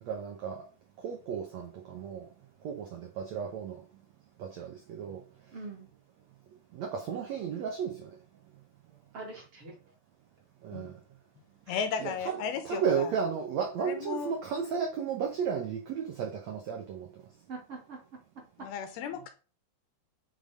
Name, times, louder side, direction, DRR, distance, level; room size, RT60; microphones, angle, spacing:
voice 1, 0.0-0.7 1.0-2.3 2.6-3.8 4.4-5.2 6.7-8.2 10.6-11.0 12.0-17.1, right 7 dB, 80° right, 1.5 m, -34 dB
voice 2, 5.5-5.9 9.1-9.7 11.7-12.5 17.5-18.0, right 3 dB, 40° right, 2.6 m, -44 dB
voice 3, 11.7-13.1 13.8-14.3 18.6-19.3, left 6 dB, 80° left, 2.8 m, -35 dB
9.0 x 3.9 x 5.0 m
omnidirectional pair, 4.6 m